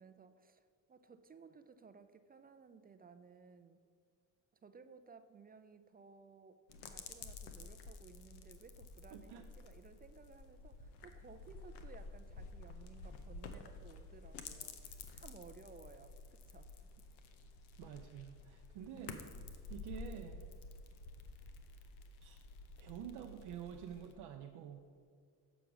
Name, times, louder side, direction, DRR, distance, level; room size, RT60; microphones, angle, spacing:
voice 1, 0.0-3.8 4.6-16.9, right 5 dB, 25° right, 10 dB, 0.4 m, -59 dB
sound 1, 6.7-24.1, left 4 dB, 80° left, 0.8 m, -51 dB
voice 2, 9.1-9.4 17.8-19.2 19.7-20.4 22.2-22.4 22.8-24.9, right 9 dB, 80° right, 2 dB, 0.7 m, -48 dB
7.1 x 5.0 x 6.1 m, 2.1 s
supercardioid pair, 80°, 39 cm